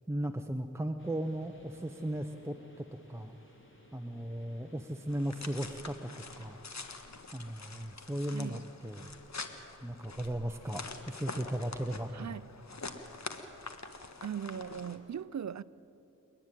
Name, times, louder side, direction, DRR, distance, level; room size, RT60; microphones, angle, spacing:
voice 1, 0.1-3.4 3.9-6.6 7.3-9.1 9.8-12.3, right 1 dB, 10° right, 0.9 m, -37 dB
sound 1, 1.0-6.6, left 1 dB, 40° left, 3.9 m, -60 dB
sound 2, 5.1-15.0, left 3 dB, 55° left, 1.6 m, -45 dB
voice 2, 12.1-12.5 14.2-15.6, right 8 dB, 60° right, 0.6 m, -39 dB
29.0 x 10.0 x 9.2 m
cardioid pair, 45°, 33 cm